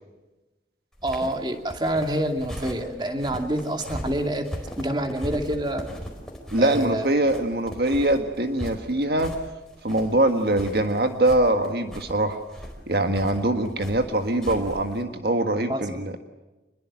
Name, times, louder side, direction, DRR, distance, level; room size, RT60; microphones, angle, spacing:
sound 1, 0.9-15.0, equal, 5° left, 4.3 m, -39 dB
voice 1, 1.0-4.5 4.8-5.9 6.6-7.1 15.7-15.8, right 1 dB, 25° right, 4 dB, 2.6 m, -27 dB
voice 2, 6.5-9.3 9.8-12.4 12.9-16.1, right 1 dB, 60° right, 6 dB, 1.7 m, -23 dB
27.0 x 21.5 x 7.5 m, 1.1 s
head